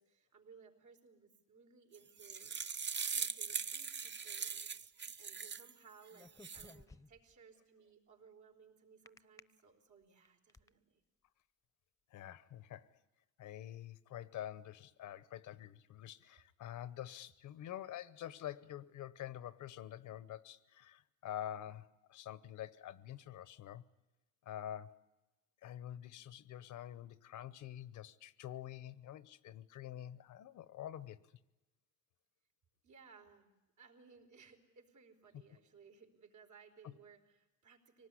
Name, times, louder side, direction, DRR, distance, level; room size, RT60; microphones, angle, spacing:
voice 1, 0.0-2.6 3.1-4.7 5.2-11.0 32.8-38.1, right 5 dB, 70° right, 4.4 m, -62 dB
sound 1, 1.9-5.7 6.2-6.7, right 6 dB, 35° right, 0.8 m, -41 dB
sound 2, 6.1-7.3 9.1-9.4 10.0-10.7, left 2 dB, 10° left, 0.8 m, -57 dB
voice 2, 12.1-12.9 13.4-23.8 24.4-25.0 25.6-31.2 36.8-36.9, left 11 dB, 75° left, 1.0 m, -47 dB
24.5 x 19.0 x 9.9 m
cardioid pair, 90°, 30 cm